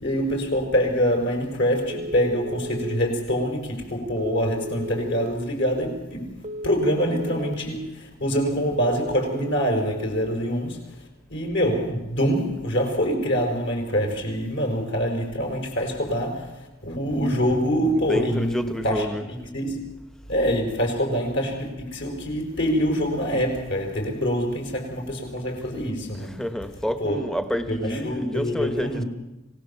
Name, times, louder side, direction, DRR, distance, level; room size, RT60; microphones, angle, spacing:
voice 1, 0.0-20.0 20.3-26.4 27.0-27.3 27.7-29.1, equal, 55° left, 5.3 m, -25 dB
Telephone, 1.9-3.0 4.2-5.3 6.4-7.5 8.7-9.8, right 1 dB, 35° right, 1.0 m, -34 dB
voice 2, 18.1-19.3 26.1-29.0, equal, 5° left, 1.2 m, -29 dB
26.0 x 18.0 x 7.1 m
head